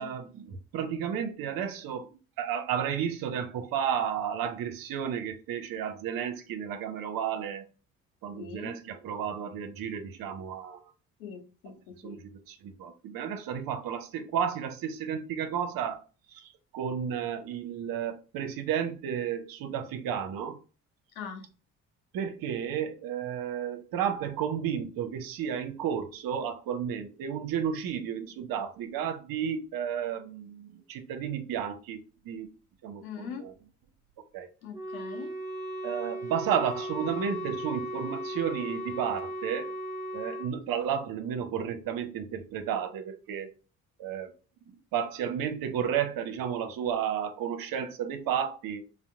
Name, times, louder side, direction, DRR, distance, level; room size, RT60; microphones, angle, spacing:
voice 1, 0.0-2.1 2.4-7.6 8.2-10.9 12.0-16.0 16.3-20.6 22.1-32.0 32.2-32.5 32.8-33.5 34.3-34.5 35.8-39.7 40.1-43.5 44.0-44.3 44.9-48.8, right 8 dB, 55° right, 0.6 m, -32 dB
voice 2, 8.3-8.8 11.2-12.2 21.2-21.5 33.0-33.4 34.6-35.3, left 6 dB, 80° left, 0.7 m, -42 dB
Wind instrument woodwind instrument, 34.7-40.5, equal, 10° right, 0.7 m, -36 dB
2.8 x 2.0 x 3.6 m
figure-of-eight pair, 45°, 42 cm